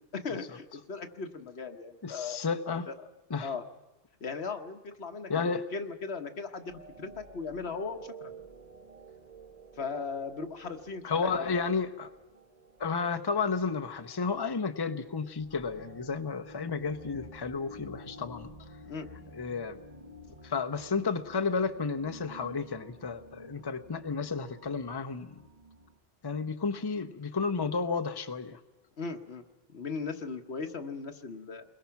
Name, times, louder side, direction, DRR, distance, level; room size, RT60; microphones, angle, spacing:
voice 1, 0.0-2.4 2.9-3.0 3.4-3.6 4.2-6.7 7.0-8.3 9.8-11.3 18.8-19.1 29.0-29.4 29.7-31.6, left 4 dB, 75° left, 7 dB, 1.5 m, -38 dB
voice 2, 2.0-2.9 3.3-3.5 5.3-5.6 11.0-12.1 12.8-18.5 19.3-19.8 20.4-25.4 26.2-28.6, left 5 dB, 25° left, 9 dB, 0.8 m, -32 dB
sound 1, 6.6-26.0, right 1 dB, 40° right, 1.4 m, -51 dB
29.5 x 22.0 x 5.8 m, 1.0 s
omnidirectional pair, 1.1 m